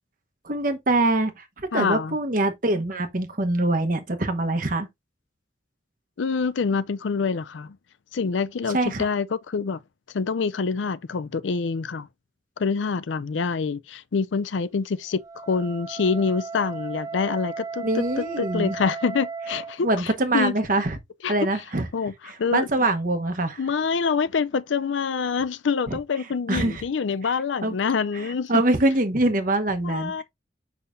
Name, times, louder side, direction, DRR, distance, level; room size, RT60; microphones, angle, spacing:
voice 1, 0.4-4.9 8.7-9.1 17.8-18.8 19.8-21.0 21.3-21.9 22.3-23.6 25.9-26.0 26.5-26.8 27.6-27.7 28.1-30.2, right 2 dB, 45° right, 1.1 m, -24 dB
voice 2, 1.7-2.2 6.2-7.8 8.1-9.8 10.1-12.1 12.6-20.5 21.2-21.3 21.9-22.1 22.4-22.7 23.6-28.6 29.8-30.2, left 5 dB, 80° left, 0.5 m, -26 dB
Wind instrument woodwind instrument, 15.1-19.8, right 5 dB, 20° right, 0.5 m, -35 dB
7.3 x 5.7 x 2.6 m
head